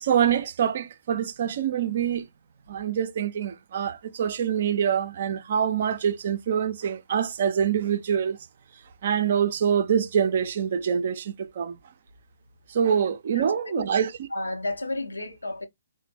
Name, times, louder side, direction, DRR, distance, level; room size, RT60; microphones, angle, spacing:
voice 1, 0.0-2.3 2.7-8.4 9.0-11.8 12.7-14.3, right 8 dB, 45° right, 0.4 m, -25 dB
voice 2, 13.3-13.9 14.3-15.7, left 2 dB, 75° left, 0.7 m, -32 dB
4.0 x 2.1 x 3.1 m
figure-of-eight pair, 130°, 0 cm